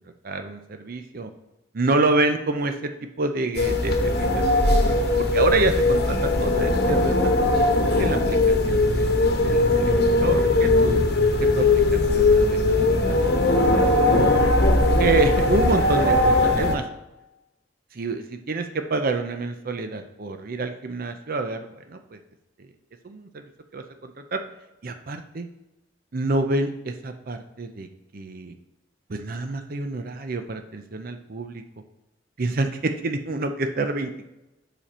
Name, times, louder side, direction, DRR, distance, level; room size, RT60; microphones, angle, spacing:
voice 1, 0.2-1.3 1.7-2.9 3.2-4.4 4.7-7.6 8.0-8.4 8.7-11.0 11.4-14.6 15.0-16.8 17.9-22.2 23.0-23.4 23.7-24.4 24.8-25.5 26.1-27.9 28.1-28.5 29.1-31.6 32.4-34.3, right 2 dB, 55° right, 6 dB, 0.6 m, -28 dB
sound 1, 3.5-16.7, left 2 dB, 60° left, 1.0 m, -20 dB
7.5 x 5.1 x 4.3 m, 0.95 s
head